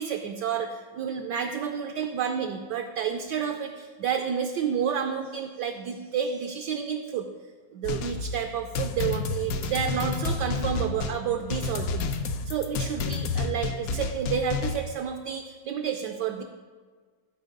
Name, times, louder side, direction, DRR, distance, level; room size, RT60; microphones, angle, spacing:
voice 1, 0.0-7.3 7.7-12.1 12.4-16.4, right 7 dB, 75° right, 5 dB, 1.0 m, -30 dB
sound 1, 7.8-14.8, left 4 dB, 80° left, 0.8 m, -30 dB
12.0 x 4.3 x 5.2 m, 1.5 s
omnidirectional pair, 2.2 m